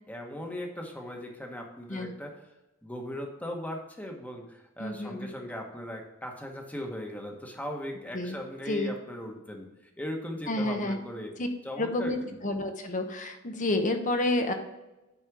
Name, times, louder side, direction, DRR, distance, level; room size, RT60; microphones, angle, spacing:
voice 1, 0.1-2.4 2.8-9.7 10.0-11.3 11.6-12.3, left 1 dB, 10° left, 1 dB, 1.3 m, -38 dB
voice 2, 4.8-5.3 8.1-8.4 8.7-8.9 10.5-11.0 11.4-11.5 11.8-14.5, left 1 dB, 40° left, 6 dB, 1.0 m, -29 dB
9.7 x 4.3 x 4.7 m, 1.0 s
head